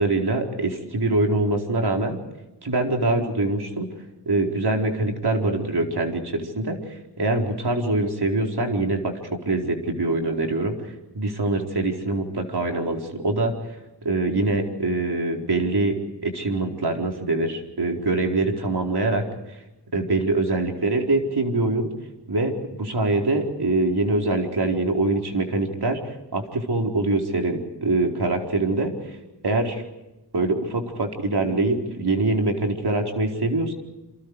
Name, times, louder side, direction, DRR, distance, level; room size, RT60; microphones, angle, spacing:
voice 1, 0.0-2.2 2.6-3.9 4.3-13.5 14.0-16.0 16.2-19.2 19.9-21.9 22.3-29.2 29.4-29.8 30.3-33.7, right 2 dB, 70° right, 2 dB, 4.6 m, -24 dB
28.5 x 27.0 x 4.9 m, 0.96 s
wide cardioid pair, 85°, 41 cm